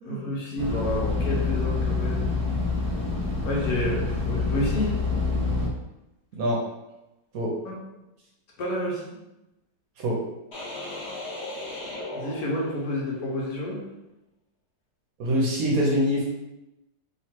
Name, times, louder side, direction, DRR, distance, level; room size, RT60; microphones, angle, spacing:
voice 1, 0.1-2.3 3.4-5.0 7.6-7.7 8.6-9.0 12.1-13.8, left 1 dB, 60° left, -3 dB, 1.3 m, -29 dB
sound 1, 0.6-5.7, left 3 dB, 15° right, 1.1 m, -26 dB
sound 2, 10.5-13.1, left 2 dB, 40° left, 1.2 m, -37 dB
voice 2, 15.2-16.3, equal, 65° right, -2 dB, 1.0 m, -24 dB
3.1 x 2.9 x 4.3 m, 0.95 s
omnidirectional pair, 1.9 m